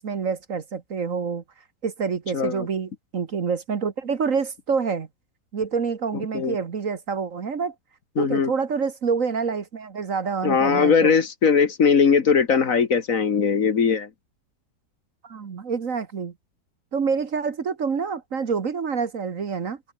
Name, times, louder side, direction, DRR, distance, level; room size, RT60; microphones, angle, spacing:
voice 1, 0.0-1.4 1.8-5.1 5.5-7.7 8.2-11.2 15.2-16.3 16.9-19.8, right 5 dB, 50° right, 1.7 m, -27 dB
voice 2, 2.3-2.7 6.3-6.5 8.2-8.5 10.4-14.1, left 6 dB, 50° left, 1.7 m, -20 dB
omnidirectional pair, 1.9 m